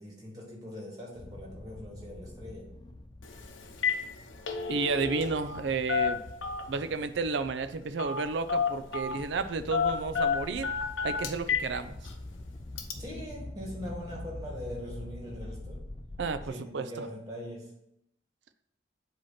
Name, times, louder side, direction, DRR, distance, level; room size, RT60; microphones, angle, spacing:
voice 1, 0.0-2.7 13.0-15.8 16.5-17.7, equal, 20° right, -2 dB, 1.8 m, -41 dB
sound 1, 1.2-16.5, left 1 dB, 20° left, 0.4 m, -45 dB
Telephone, 3.2-3.4 3.7-4.0 4.3-5.6 5.9-6.8 8.0-8.2 8.5-9.2 9.7-11.7 12.1-12.2 12.8-12.9, left 6 dB, 80° left, 0.8 m, -30 dB
voice 2, 4.7-6.2 6.7-10.7 11.0-11.9 16.2-16.9, right 4 dB, 65° right, 11 dB, 0.4 m, -32 dB
7.7 x 2.9 x 5.7 m, 0.80 s
head